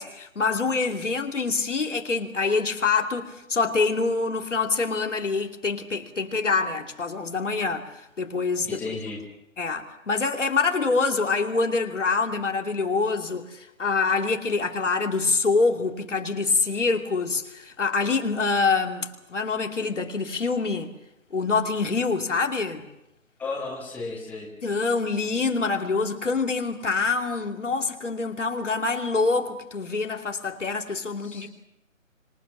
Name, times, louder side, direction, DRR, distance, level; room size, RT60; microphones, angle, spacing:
voice 1, 0.0-7.9 8.2-8.8 9.6-20.9 21.3-22.9 24.6-31.5, left 4 dB, 60° left, 2.7 m, -25 dB
voice 2, 8.6-9.2 23.4-24.5 31.2-31.5, left 3 dB, 5° left, 2.1 m, -34 dB
26.0 x 24.5 x 6.2 m
figure-of-eight pair, 155°, 40 cm